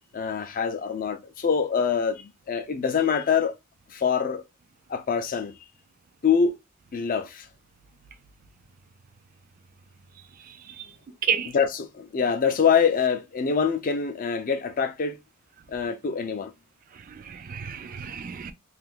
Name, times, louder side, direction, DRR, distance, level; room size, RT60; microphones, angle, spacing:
voice 1, 0.1-3.5 3.9-4.4 4.9-5.5 6.2-6.6 6.9-7.5 11.5-15.2 15.7-16.5, left 6 dB, 40° left, 0.4 m, -25 dB
voice 2, 10.5-10.9 11.2-11.5 16.9-18.5, right 7 dB, 40° right, 0.3 m, -31 dB
2.5 x 2.4 x 3.5 m
head